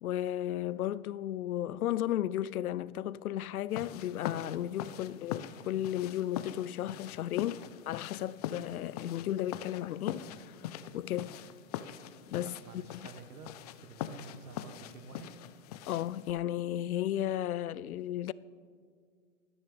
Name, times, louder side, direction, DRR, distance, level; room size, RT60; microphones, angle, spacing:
voice 1, 0.0-11.4 12.3-12.6 15.9-18.3, left 12 dB, 85° left, 0.5 m, -34 dB
sound 1, 3.7-16.3, left 10 dB, 30° left, 0.4 m, -42 dB
voice 2, 12.4-13.5 13.8-15.3, right 5 dB, 85° right, 1.4 m, -50 dB
26.0 x 10.0 x 3.4 m
hypercardioid pair, 130°, 42 cm